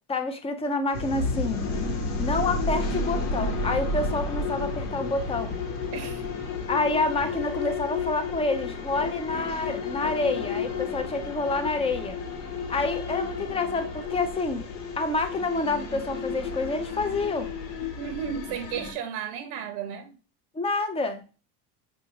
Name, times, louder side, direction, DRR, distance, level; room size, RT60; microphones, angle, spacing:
voice 1, 0.1-1.7 2.2-5.5 6.7-12.2 12.7-14.7 15.0-17.5 20.5-21.2, left 3 dB, 15° left, 7 dB, 0.4 m, -28 dB
sound 1, 0.9-18.9, left 4 dB, 80° left, 1.2 m, -31 dB
voice 2, 5.9-6.3 17.8-20.2, right 8 dB, 60° right, 7 dB, 0.6 m, -34 dB
5.0 x 2.6 x 2.8 m, 0.34 s
supercardioid pair, 105°, 47 cm